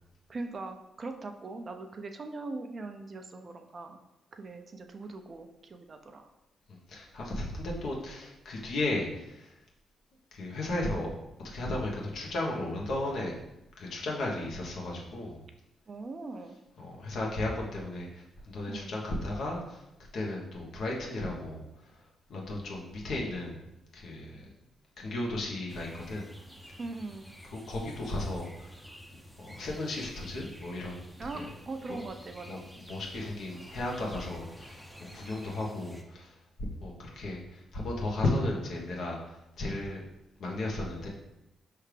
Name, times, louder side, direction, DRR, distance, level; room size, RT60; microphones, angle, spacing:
voice 1, 0.3-4.0 4.3-6.3 15.9-16.6 18.7-18.9 26.8-27.3 31.2-32.6, right 3 dB, 45° right, 5 dB, 0.5 m, -41 dB
voice 2, 6.7-9.5 10.3-11.1 11.4-13.3 13.8-15.4 16.8-19.8 20.1-21.6 22.3-23.6 23.9-24.5 25.0-26.3 27.5-28.8 29.4-31.0 31.3-31.5 32.5-34.8 35.1-36.3 36.6-40.0 40.4-41.1, left 2 dB, 65° left, -2 dB, 1.0 m, -34 dB
sound 1, 25.7-36.0, equal, ahead, 0.7 m, -50 dB
4.7 x 3.3 x 3.3 m, 0.90 s
hypercardioid pair, 45°, 0 cm